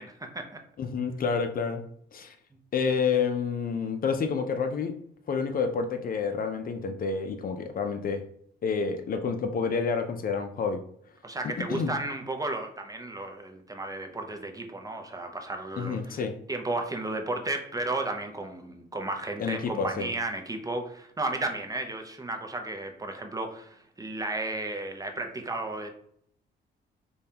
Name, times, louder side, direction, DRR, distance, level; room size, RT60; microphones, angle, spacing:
voice 1, 0.0-0.6 11.2-25.9, right 2 dB, 20° right, 4 dB, 0.6 m, -34 dB
voice 2, 0.8-1.8 2.1-2.4 2.7-5.0 5.3-8.2 8.6-10.8 11.7-11.9 15.8-16.4 19.4-20.1, left 5 dB, 45° left, 7 dB, 0.5 m, -29 dB
5.1 x 2.3 x 2.8 m, 0.65 s
cardioid pair, 90°, 20 cm